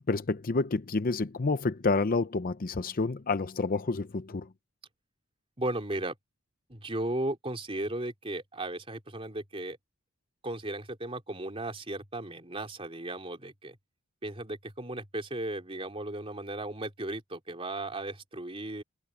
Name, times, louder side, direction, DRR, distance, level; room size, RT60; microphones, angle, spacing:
voice 1, 0.1-4.5, left 3 dB, 40° left, 0.6 m, -29 dB
voice 2, 5.6-6.2 6.7-9.8 10.4-13.8 14.2-18.8, right 1 dB, 25° right, 3.6 m, -35 dB
head